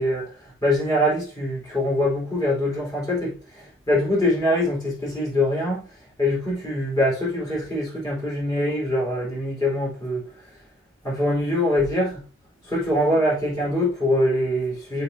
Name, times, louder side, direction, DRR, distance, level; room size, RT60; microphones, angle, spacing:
voice 1, 0.0-10.3 11.0-12.3 12.6-15.0, left 1 dB, 20° left, 4.2 m, -24 dB
6.9 x 6.0 x 2.8 m
head